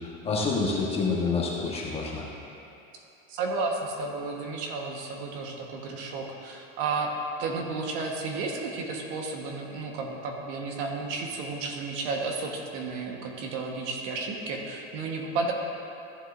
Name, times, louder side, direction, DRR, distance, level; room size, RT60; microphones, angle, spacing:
voice 1, 0.0-2.2, left 4 dB, 20° left, -4 dB, 1.4 m, -28 dB
voice 2, 3.3-7.1 7.4-15.5, right 3 dB, 60° right, 1 dB, 1.4 m, -32 dB
14.5 x 7.7 x 2.6 m, 2.7 s
supercardioid pair, 135°, 31 cm